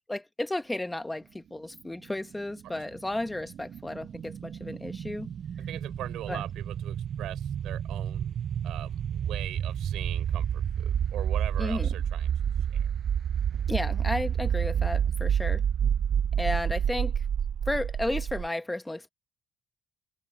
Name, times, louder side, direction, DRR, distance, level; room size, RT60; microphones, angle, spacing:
voice 1, 0.1-5.3 6.3-6.4 11.6-11.9 13.7-15.6 16.4-17.2 17.7-19.1, left 1 dB, 10° left, 1.3 m, -33 dB
sound 1, 2.6-18.5, right 8 dB, 60° right, 0.5 m, -29 dB
voice 2, 5.7-8.4 8.6-12.3 12.7-12.8, right 13 dB, 85° right, 4.5 m, -41 dB
cardioid pair, 90°, 0 cm